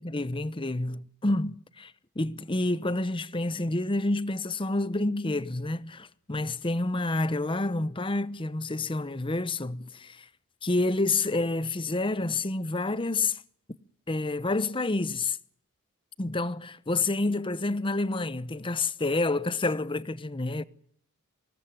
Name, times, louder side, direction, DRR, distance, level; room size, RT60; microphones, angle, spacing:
voice 1, 0.0-10.3 10.6-13.4 14.1-15.4 16.2-20.6, left 2 dB, 25° left, 0.9 m, -29 dB
25.0 x 20.0 x 7.9 m
head